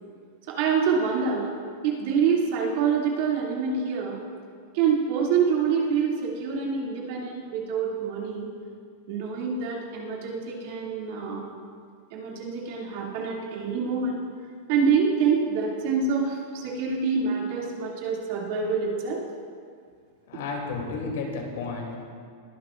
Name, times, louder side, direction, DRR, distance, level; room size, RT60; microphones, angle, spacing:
voice 1, 0.5-1.5 1.8-4.2 4.7-8.5 9.1-11.5 12.1-14.2 14.7-19.2, right 6 dB, 50° right, -3 dB, 2.5 m, -26 dB
voice 2, 20.3-22.0, left 4 dB, 80° left, 0 dB, 2.8 m, -32 dB
21.5 x 11.0 x 2.5 m, 2.1 s
supercardioid pair, 165°, 0 cm